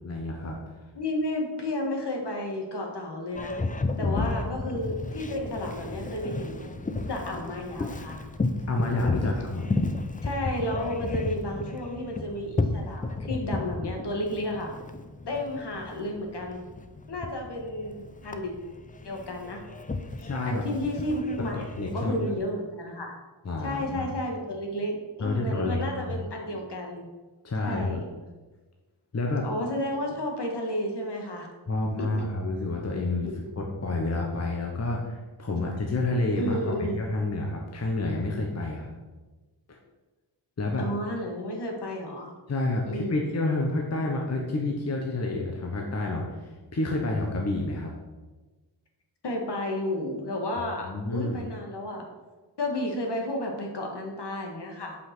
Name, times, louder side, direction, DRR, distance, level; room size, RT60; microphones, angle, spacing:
voice 1, 0.0-0.8 4.0-4.2 4.5-4.6 8.7-9.7 20.2-20.7 21.5-22.1 23.4-24.1 25.2-26.2 27.4-28.0 29.1-29.5 31.7-33.3 33.6-38.9 39.7-39.8 40.6-40.9 42.5-47.9 50.8-51.4, left 2 dB, 35° left, 0 dB, 1.0 m, -29 dB
voice 2, 1.0-3.6 4.0-8.2 10.2-14.7 15.3-16.6 17.1-18.5 19.0-19.6 20.5-21.5 21.9-23.2 23.6-27.1 27.6-28.1 29.4-31.5 32.2-32.3 33.2-33.4 36.4-37.0 40.8-42.3 42.9-43.2 49.2-52.1 52.6-55.0, left 1 dB, 60° left, 1 dB, 1.9 m, -32 dB
Boat Water vehicle, 3.3-22.4, left 3 dB, 20° left, 0.5 m, -33 dB
8.2 x 5.6 x 6.0 m, 1.2 s
wide cardioid pair, 160°, 46 cm